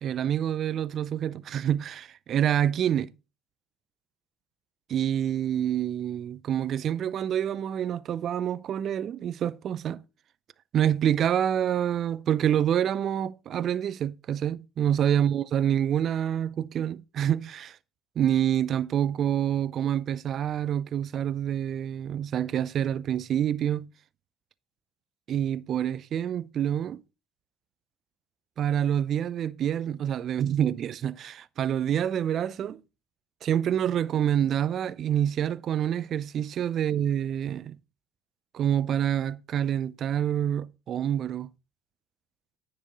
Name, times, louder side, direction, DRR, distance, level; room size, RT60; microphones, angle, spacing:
voice 1, 0.0-3.1 4.9-10.0 10.7-17.8 18.2-23.9 25.3-27.0 28.6-32.8 33.4-37.8 38.5-41.5, right 10 dB, 50° right, 0.5 m, -27 dB
9.9 x 6.8 x 3.9 m
hypercardioid pair, 65°, 0 cm